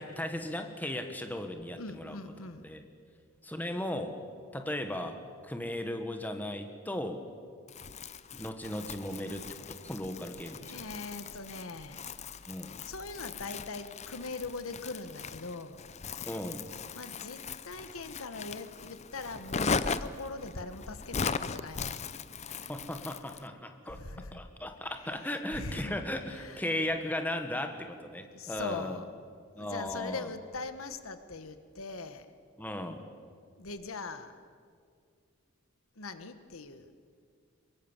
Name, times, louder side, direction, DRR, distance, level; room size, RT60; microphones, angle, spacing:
voice 1, 0.0-2.2 2.6-2.8 3.4-4.2 4.5-5.2 5.4-7.2 8.3-9.6 9.8-10.9 12.5-12.8 16.2-16.6 22.7-24.0 24.3-29.0 29.6-30.3 32.6-33.0, left 1 dB, 10° left, 6 dB, 1.5 m, -36 dB
voice 2, 1.8-2.7 10.6-12.0 12.4-12.5 12.8-15.9 16.9-22.0 23.9-24.4 25.5-25.9 26.3-26.7 28.3-29.1 29.6-32.3 33.6-34.4 36.0-36.9, left 3 dB, 85° left, 10 dB, 1.4 m, -41 dB
Crumpling crinkling, 7.7-23.5, left 5 dB, 30° left, 0.6 m, -39 dB
23.5 x 22.5 x 7.3 m, 2.1 s
head